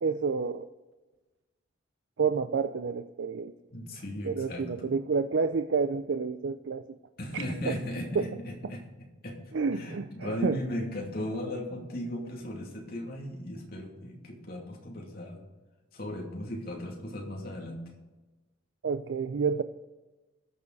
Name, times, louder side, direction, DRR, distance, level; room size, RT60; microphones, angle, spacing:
voice 1, 0.0-0.7 2.2-3.5 4.2-6.8 7.7-7.8 8.1-8.2 9.5-10.6 18.8-19.6, right 5 dB, 70° right, 9 dB, 0.5 m, -29 dB
voice 2, 3.7-5.0 7.2-9.4 9.7-15.4 15.9-17.8, left 1 dB, 50° left, 0 dB, 2.6 m, -37 dB
21.0 x 7.1 x 4.0 m, 1.2 s
head